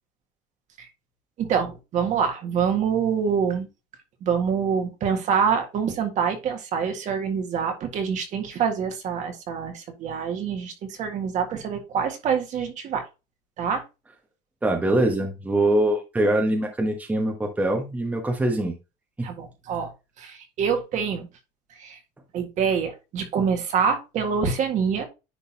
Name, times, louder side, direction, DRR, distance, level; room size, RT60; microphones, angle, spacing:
voice 1, 1.4-3.7 4.2-13.1 13.6-13.8 19.2-19.9 20.2-21.3 21.7-22.0 22.3-25.1, right 6 dB, 45° right, 5 dB, 1.7 m, -26 dB
voice 2, 14.6-18.8 19.2-19.3, right 1 dB, 10° right, 2 dB, 1.1 m, -23 dB
10.0 x 3.9 x 2.8 m, 0.27 s
cardioid pair, 145°, 17 cm